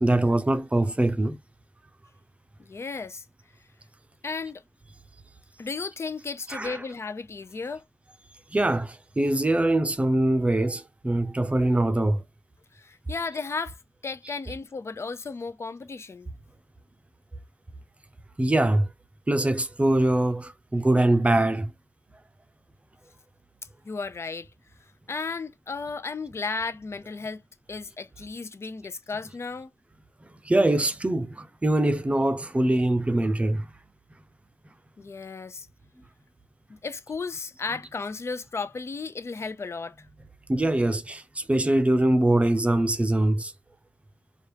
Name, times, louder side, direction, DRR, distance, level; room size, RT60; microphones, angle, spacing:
voice 1, 0.0-1.4 6.5-6.8 8.5-12.2 18.4-18.9 19.3-21.7 30.4-33.7 40.5-43.5, right 1 dB, 20° right, 0.6 m, -23 dB
voice 2, 2.6-3.2 4.2-4.6 5.6-7.8 12.7-13.8 14.0-16.3 23.8-24.5 25.1-27.4 27.7-29.7 35.0-35.7 36.7-40.1, left 4 dB, 50° left, 0.6 m, -34 dB
4.3 x 2.4 x 3.3 m
wide cardioid pair, 95°, 6 cm